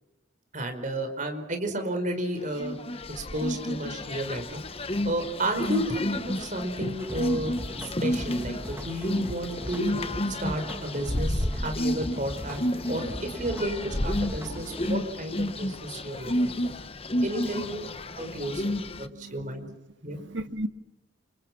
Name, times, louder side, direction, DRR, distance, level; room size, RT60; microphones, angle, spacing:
voice 1, 0.5-2.7 3.2-4.6 5.0-7.5 7.8-9.9 10.3-12.6 12.9-16.5 17.2-19.7 20.0-20.2, right 1 dB, 40° right, 5.0 m, -32 dB
sound 1, 2.6-19.1, left 1 dB, 30° left, 1.0 m, -31 dB
sound 2, 7.0-15.0, equal, 10° right, 2.2 m, -39 dB
voice 2, 18.2-19.7 20.0-20.7, right 1 dB, 60° right, 1.7 m, -38 dB
29.5 x 28.5 x 6.1 m
head